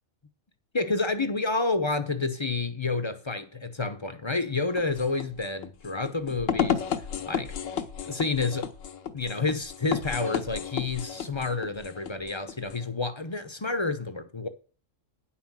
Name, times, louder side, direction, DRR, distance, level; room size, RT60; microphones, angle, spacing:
voice 1, 0.7-6.8 7.2-7.5 8.0-8.7 9.1-14.5, left 3 dB, 30° left, 0.7 m, -29 dB
epic rave beat by kris klavenes, 4.7-12.9, left 8 dB, 75° left, 1.2 m, -33 dB
9.8 x 5.8 x 7.3 m
omnidirectional pair, 1.3 m